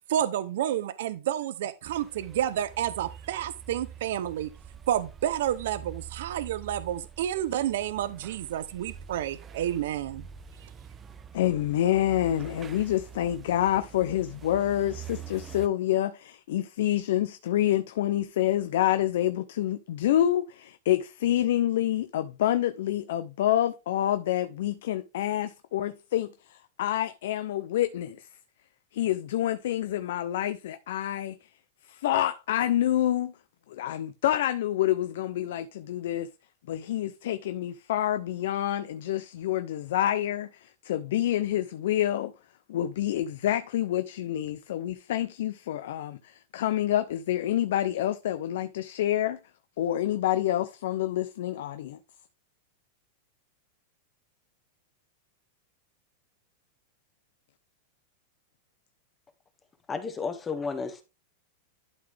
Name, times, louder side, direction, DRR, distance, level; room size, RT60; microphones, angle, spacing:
voice 1, 0.1-4.5 4.9-10.3 10.6-10.7, right 11 dB, 70° right, 0.6 m, -30 dB
sound 1, 1.8-15.7, right 8 dB, 15° right, 0.5 m, -45 dB
voice 2, 11.3-28.3 28.9-31.4 31.9-33.3 33.7-36.3 36.7-42.3 42.7-49.4 49.8-52.0, left 12 dB, 70° left, 0.5 m, -27 dB
voice 3, 59.9-61.0, left 5 dB, 15° left, 1.0 m, -32 dB
11.5 x 3.9 x 3.4 m
supercardioid pair, 160°, 0 cm